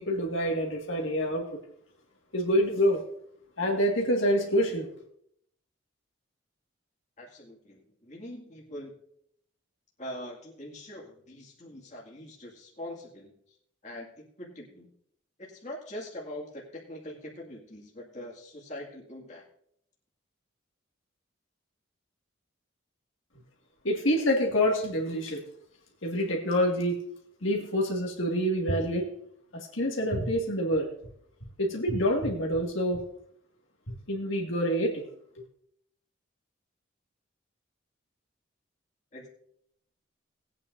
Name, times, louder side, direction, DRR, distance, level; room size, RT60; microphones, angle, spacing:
voice 1, 0.0-1.6 2.3-3.0 3.6-4.9 23.8-25.4 26.0-27.0 27.4-29.1 29.5-30.9 31.6-33.0 33.9-35.0, equal, 75° left, -1 dB, 2.0 m, -27 dB
voice 2, 7.2-8.9 10.0-13.3 13.8-14.9 15.4-19.4 39.1-39.3, left 1 dB, 35° left, -2 dB, 2.2 m, -43 dB
19.0 x 8.8 x 2.6 m, 0.69 s
head